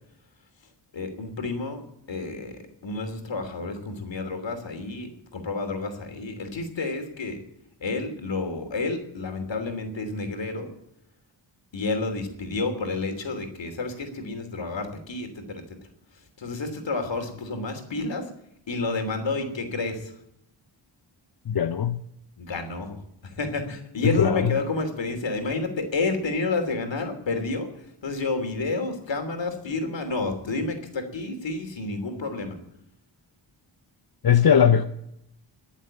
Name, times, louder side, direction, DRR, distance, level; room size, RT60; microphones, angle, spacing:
voice 1, 0.9-1.8 2.1-7.4 7.8-10.7 11.7-15.8 16.1-18.3 18.7-20.1 22.4-32.6, left 3 dB, 70° left, 3.1 m, -30 dB
voice 2, 21.5-22.0 24.0-24.5 34.2-34.8, left 8 dB, 50° left, 0.8 m, -19 dB
21.5 x 7.3 x 8.8 m
wide cardioid pair, 130°, 46 cm